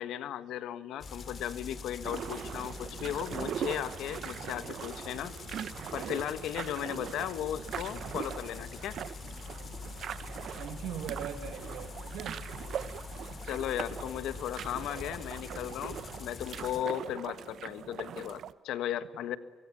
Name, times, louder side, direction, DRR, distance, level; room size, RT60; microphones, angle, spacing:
voice 1, 0.0-5.3 5.9-9.0 13.4-19.4, left 11 dB, 85° left, 14 dB, 1.4 m, -36 dB
sound 1, 1.0-16.8, left 4 dB, 45° left, 4.6 m, -44 dB
sound 2, 2.0-18.5, right 9 dB, 65° right, 1.0 m, -41 dB
voice 2, 9.5-9.9 10.6-12.4, right 9 dB, 85° right, 9 dB, 2.7 m, -41 dB
24.0 x 23.5 x 8.7 m, 1.5 s
cardioid pair, 90°, 0 cm